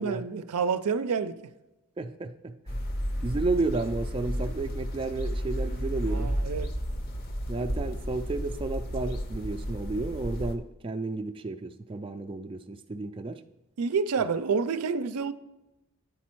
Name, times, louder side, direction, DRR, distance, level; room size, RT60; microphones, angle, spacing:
voice 1, 0.0-1.5 6.1-6.7 13.8-15.3, right 5 dB, 85° right, 0.4 m, -28 dB
voice 2, 2.0-2.8 3.2-6.4 7.5-13.4, right 3 dB, 25° right, 0.3 m, -32 dB
sound 1, 2.7-10.5, equal, 45° left, 0.7 m, -32 dB
9.3 x 4.2 x 4.5 m
head